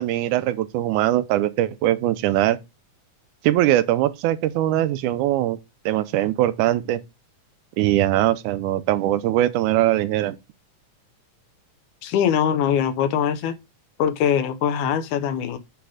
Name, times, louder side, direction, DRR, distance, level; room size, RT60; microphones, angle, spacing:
voice 1, 0.0-2.6 3.4-5.6 5.9-7.0 7.8-10.4, right 14 dB, 85° right, 2.1 m, -21 dB
voice 2, 12.0-13.5 14.0-15.6, left 8 dB, 85° left, 2.4 m, -22 dB
8.2 x 3.4 x 4.9 m
omnidirectional pair, 3.5 m